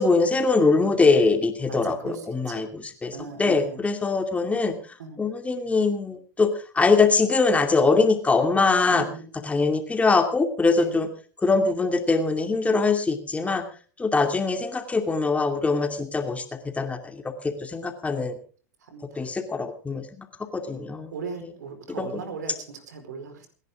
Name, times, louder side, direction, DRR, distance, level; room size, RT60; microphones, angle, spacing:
voice 1, 0.0-4.7 5.2-6.5 6.7-9.1 9.4-11.1 11.4-13.6 14.0-16.4 16.8-17.2 17.6-18.3 19.2-20.0 20.5-21.1 21.4-21.5 22.0-22.2, left 4 dB, 15° left, 5 dB, 2.6 m, -22 dB
voice 2, 1.7-2.2 2.5-2.6 3.1-3.8 5.0-5.2 8.6-9.3 10.8-11.0 18.9-19.2 20.7-23.5, right 5 dB, 80° right, 8 dB, 4.7 m, -38 dB
27.5 x 11.0 x 3.7 m, 0.40 s
hypercardioid pair, 95°, 9 cm